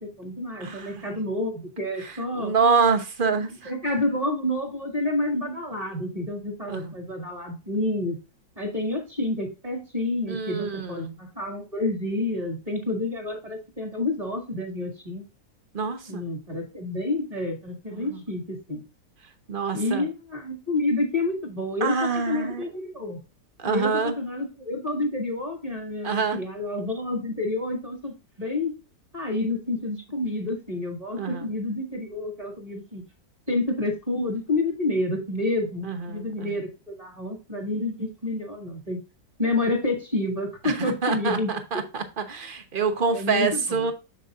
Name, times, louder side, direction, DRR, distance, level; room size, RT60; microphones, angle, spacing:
voice 1, 0.0-2.6 3.3-8.2 8.6-15.2 16.1-18.8 19.7-23.2 23.6-28.7 29.1-33.0 33.5-39.0 39.4-41.8 43.1-43.9, left 2 dB, 20° right, 2 dB, 2.1 m, -29 dB
voice 2, 2.4-3.7 6.7-6.9 10.3-11.2 15.7-16.2 17.9-18.2 19.5-20.1 21.8-22.6 23.6-24.1 26.0-26.4 31.2-31.5 35.8-36.6 40.6-43.9, right 5 dB, 35° right, 7 dB, 0.9 m, -26 dB
7.3 x 6.6 x 2.5 m, 0.29 s
omnidirectional pair, 1.9 m